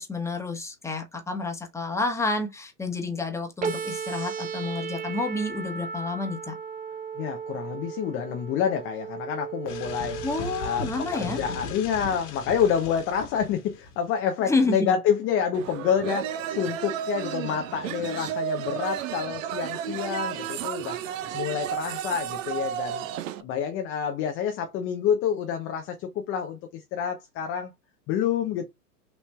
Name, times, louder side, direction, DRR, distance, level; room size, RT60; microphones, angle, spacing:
voice 1, 0.0-6.5 10.2-11.4 14.5-14.9, left 3 dB, 5° left, 1.1 m, -29 dB
sound 1, 3.6-11.6, right 6 dB, 15° right, 0.7 m, -36 dB
voice 2, 7.2-10.2 10.6-23.1 23.4-27.7 28.1-28.6, left 8 dB, 25° left, 0.6 m, -28 dB
sound 2, 9.7-14.1, left 4 dB, 70° left, 1.8 m, -38 dB
sound 3, 15.5-23.4, right 11 dB, 55° right, 0.8 m, -32 dB
5.9 x 3.1 x 2.2 m
hypercardioid pair, 110°, 47 cm